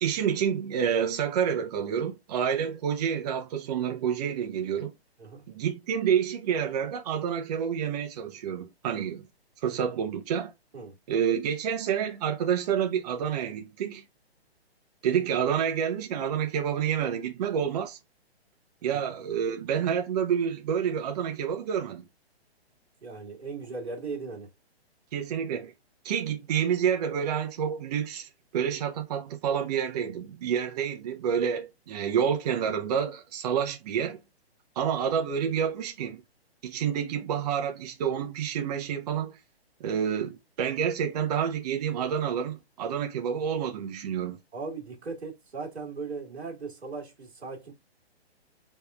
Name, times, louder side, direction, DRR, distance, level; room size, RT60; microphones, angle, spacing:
voice 1, 0.0-4.9 5.5-9.3 9.6-10.5 11.1-14.0 15.0-18.0 18.8-22.0 25.1-25.7 26.0-34.2 34.8-36.2 36.6-39.4 39.8-44.4, right 8 dB, 40° right, 0.8 m, -28 dB
voice 2, 23.0-24.5 44.5-47.7, right 4 dB, 90° right, 1.8 m, -38 dB
4.2 x 3.6 x 2.3 m
hypercardioid pair, 150°, 32 cm